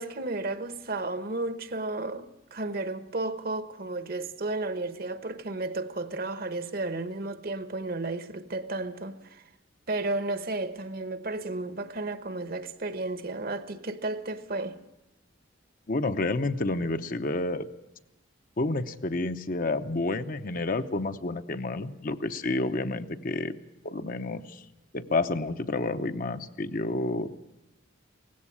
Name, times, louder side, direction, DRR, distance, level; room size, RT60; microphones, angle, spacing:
voice 1, 0.0-9.4 9.9-14.8, right 2 dB, 50° right, 1.1 m, -33 dB
voice 2, 15.9-17.7 18.6-23.6 23.8-24.6 24.9-27.3, left 2 dB, 45° left, 0.8 m, -29 dB
18.0 x 16.0 x 9.9 m
head